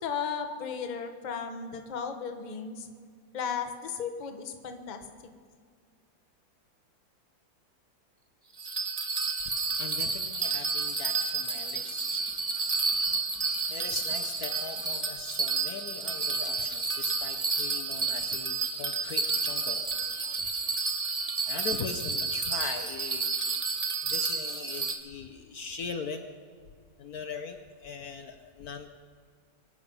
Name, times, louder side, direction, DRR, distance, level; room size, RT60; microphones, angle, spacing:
voice 1, 0.0-2.9 3.3-5.1, left 6 dB, 30° left, 6 dB, 1.0 m, -35 dB
Bell, 8.6-25.0, right 4 dB, 25° right, 1.0 m, -30 dB
voice 2, 9.5-20.9 21.4-23.3 24.0-26.3 27.0-28.9, left 5 dB, 60° left, 7 dB, 1.2 m, -41 dB
24.0 x 10.0 x 5.5 m, 2.1 s
omnidirectional pair, 2.0 m